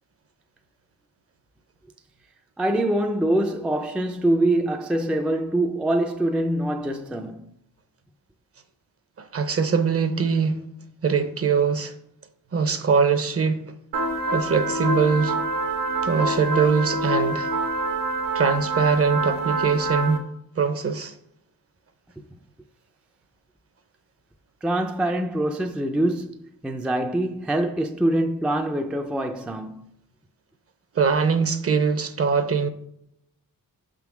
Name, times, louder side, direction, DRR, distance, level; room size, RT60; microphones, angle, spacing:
voice 1, 2.6-7.5 22.2-22.3 24.6-29.9, right 1 dB, 5° right, 0.3 m, -24 dB
voice 2, 9.2-10.6 11.0-11.9 12.5-13.6 14.3-15.4 16.0-17.5 18.3-20.2 20.6-21.1 30.9-32.7, right 5 dB, 40° right, 0.6 m, -22 dB
sound 1, 13.9-20.2, right 2 dB, 75° right, 1.2 m, -26 dB
5.7 x 3.8 x 5.9 m
wide cardioid pair, 105°, 35 cm